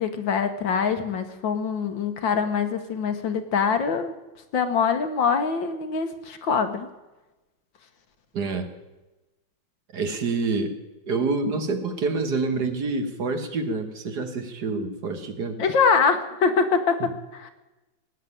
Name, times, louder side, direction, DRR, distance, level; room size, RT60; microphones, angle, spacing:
voice 1, 0.0-4.1 4.5-6.9 15.6-17.0 17.3-17.5, left 5 dB, 70° left, 8 dB, 1.9 m, -24 dB
voice 2, 8.3-8.7 9.9-10.8 11.1-15.6 17.0-17.1, right 3 dB, 55° right, 7 dB, 1.8 m, -27 dB
18.0 x 7.5 x 9.8 m, 1.1 s
omnidirectional pair, 2.2 m